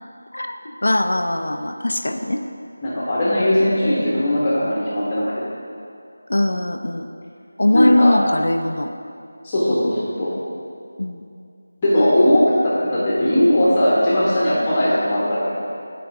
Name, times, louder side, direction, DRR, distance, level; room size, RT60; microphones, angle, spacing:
voice 1, 0.3-2.4 6.3-7.1 7.6-9.0 11.0-11.3, left 1 dB, 75° left, 6 dB, 0.6 m, -21 dB
voice 2, 2.8-5.3 7.7-8.2 9.4-10.3 11.8-15.5, left 1 dB, 20° left, -8 dB, 1.6 m, -18 dB
14.5 x 5.1 x 3.6 m, 2.4 s
figure-of-eight pair, 170°, 0 cm